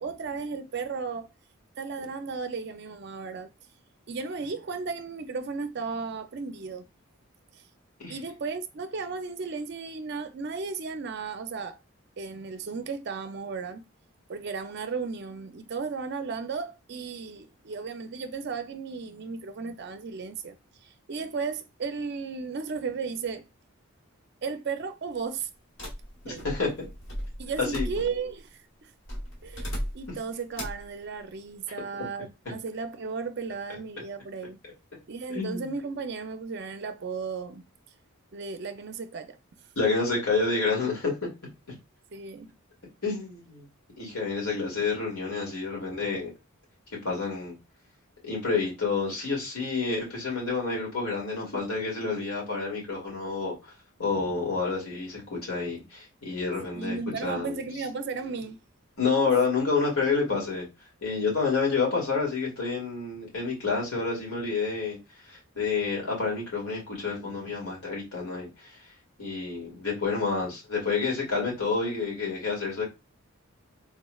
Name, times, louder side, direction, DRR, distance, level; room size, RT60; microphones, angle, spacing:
voice 1, 0.0-1.3 1.8-3.5 4.1-6.9 8.1-11.8 12.2-13.8 14.3-20.6 20.8-23.5 24.4-25.5 26.2-26.5 27.4-28.5 28.8-28.9 29.4-34.6 35.1-37.6 38.3-39.4 42.1-42.5 56.7-58.6, right 5 dB, 50° right, 0.4 m, -35 dB
sound 1, 25.8-28.4 29.1-30.2 30.5-30.9, equal, 55° left, 1.1 m, -36 dB
voice 2, 26.2-26.7 27.7-27.9 35.3-35.7 39.8-41.3 43.0-43.7 44.0-46.3 47.0-47.6 48.2-53.5 54.0-57.6 59.0-60.7 61.0-65.0 65.3-68.5 69.2-72.8, left 4 dB, 90° left, 2.0 m, -29 dB
3.5 x 3.1 x 2.3 m
head